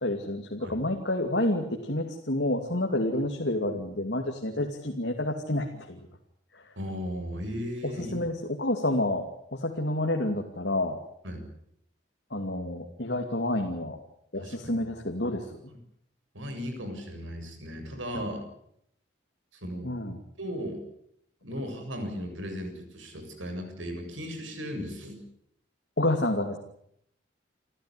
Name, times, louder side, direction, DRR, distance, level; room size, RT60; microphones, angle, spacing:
voice 1, 0.0-6.0 7.8-11.0 12.3-14.0 14.3-15.5 18.1-18.2 19.8-20.2 26.0-26.6, left 1 dB, 60° left, 3 dB, 2.6 m, -29 dB
voice 2, 6.8-8.1 11.2-11.5 14.4-14.8 15.7-15.8 16.3-18.5 19.6-19.9 20.4-20.8 21.4-25.2, equal, 90° right, 6 dB, 7.6 m, -36 dB
29.0 x 14.5 x 9.9 m, 0.72 s
head